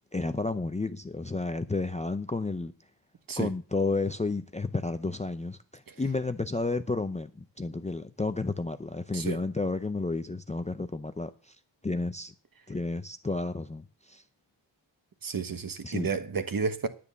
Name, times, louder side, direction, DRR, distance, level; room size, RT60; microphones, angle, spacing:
voice 1, 0.1-2.7 3.4-11.6 11.8-12.3 12.7-14.2 15.8-16.1, left 3 dB, 15° left, 0.5 m, -31 dB
voice 2, 15.2-16.9, right 5 dB, 45° right, 1.2 m, -31 dB
10.5 x 9.4 x 6.9 m
wide cardioid pair, 140°, 46 cm